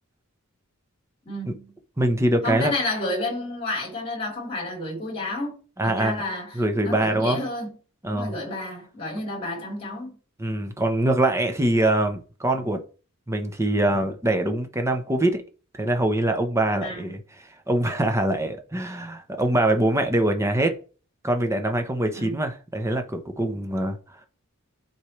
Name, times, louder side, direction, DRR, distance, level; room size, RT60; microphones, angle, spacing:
voice 1, 1.3-1.7 2.4-5.5 5.8-7.7 8.1-10.2 16.8-17.1 22.1-22.4, left 2 dB, 30° left, 4.0 m, -30 dB
voice 2, 2.0-2.7 5.8-6.2 6.5-7.4 8.0-8.3 10.4-12.8 13.3-15.4 15.8-20.7 21.2-24.0, right 1 dB, 15° right, 1.0 m, -23 dB
11.5 x 4.4 x 3.3 m
head